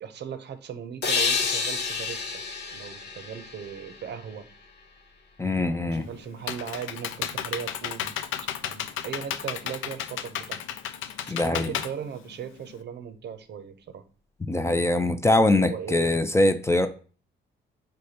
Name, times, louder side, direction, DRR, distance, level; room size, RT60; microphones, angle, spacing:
voice 1, 0.0-2.2 2.7-4.5 5.8-8.2 8.6-10.7 11.2-14.0 15.4-16.1, right 7 dB, 60° right, 0.6 m, -38 dB
sound 1, 1.0-4.5, left 5 dB, 60° left, 0.9 m, -29 dB
voice 2, 5.4-6.1 11.3-11.7 14.5-16.9, left 2 dB, 15° left, 0.4 m, -22 dB
Computer keyboard, 5.9-12.8, left 10 dB, 85° left, 0.4 m, -33 dB
4.9 x 2.2 x 4.1 m
cardioid pair, 90°, 20 cm